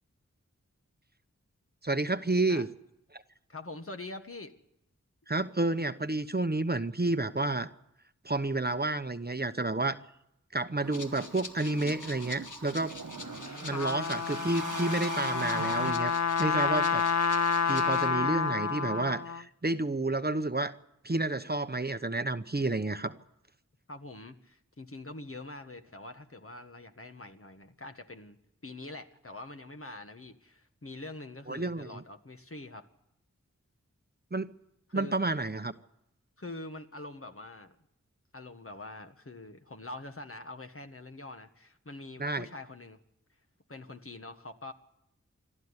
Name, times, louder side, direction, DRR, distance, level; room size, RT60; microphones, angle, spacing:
voice 1, 1.8-2.7 3.1-3.2 5.3-7.7 8.2-10.0 10.5-12.9 13.6-16.1 16.4-17.0 17.3-20.7 21.0-23.1 31.5-32.0 34.3-34.5 34.9-35.7 42.2-42.5, right 2 dB, 30° right, 10 dB, 0.9 m, -30 dB
voice 2, 3.5-4.5 13.2-14.2 23.1-23.2 23.9-32.9 34.9-35.2 36.4-37.8 38.3-43.0 43.7-44.7, left 2 dB, 45° left, 6 dB, 1.6 m, -45 dB
sound 1, 10.8-15.9, right 4 dB, 80° right, 1.4 m, -41 dB
Rattle (instrument), 10.9-18.1, left 3 dB, 80° left, 1.6 m, -47 dB
Trumpet, 13.5-19.4, left 5 dB, 60° left, 0.8 m, -29 dB
26.5 x 12.5 x 9.8 m, 0.83 s
wide cardioid pair, 55°, 31 cm